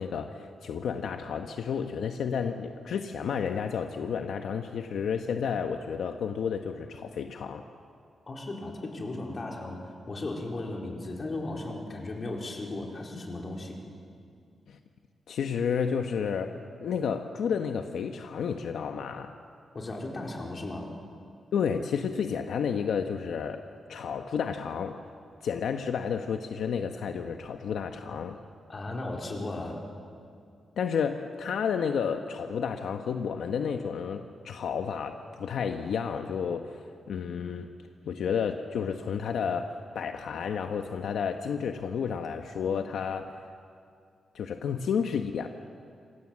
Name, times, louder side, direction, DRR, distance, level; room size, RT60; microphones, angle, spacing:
voice 1, 0.0-7.7 14.7-14.8 15.3-19.3 21.5-25.0 25.4-28.4 30.8-37.7 38.0-43.4 44.3-45.5, left 6 dB, 75° left, 5 dB, 1.2 m, -31 dB
voice 2, 8.3-13.8 19.7-20.9 28.7-29.8, left 2 dB, 30° left, 0 dB, 4.3 m, -36 dB
28.0 x 26.5 x 7.6 m, 2.3 s
wide cardioid pair, 160°, 0 cm